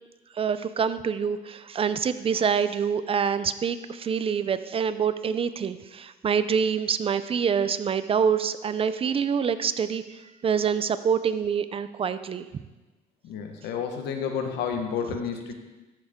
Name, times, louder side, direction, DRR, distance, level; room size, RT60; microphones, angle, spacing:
voice 1, 0.3-12.5, right 7 dB, 35° right, 13 dB, 0.5 m, -26 dB
voice 2, 13.2-15.5, left 7 dB, 80° left, 4 dB, 1.3 m, -30 dB
13.5 x 6.4 x 3.7 m, 1.1 s
cardioid pair, 110°, 17 cm